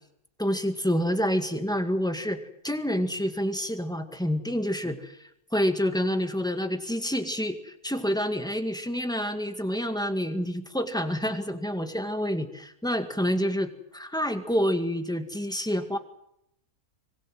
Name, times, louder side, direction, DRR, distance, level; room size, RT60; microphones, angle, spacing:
voice 1, 0.4-5.2 5.5-16.0, equal, 5° left, 7 dB, 2.0 m, -28 dB
25.0 x 20.5 x 7.9 m, 0.78 s
omnidirectional pair, 1.6 m